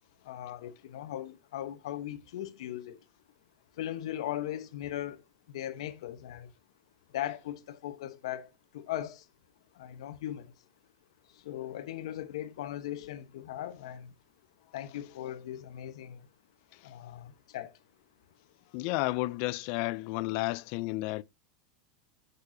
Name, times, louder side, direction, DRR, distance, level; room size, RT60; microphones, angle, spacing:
voice 1, 0.2-3.0 3.7-6.5 7.1-9.3 9.7-10.5 11.3-14.1 14.7-16.3 16.8-17.7, left 12 dB, 80° left, 1.1 m, -39 dB
voice 2, 18.7-21.2, left 21 dB, 50° left, 0.4 m, -32 dB
8.3 x 6.7 x 2.7 m
supercardioid pair, 145°, 3 cm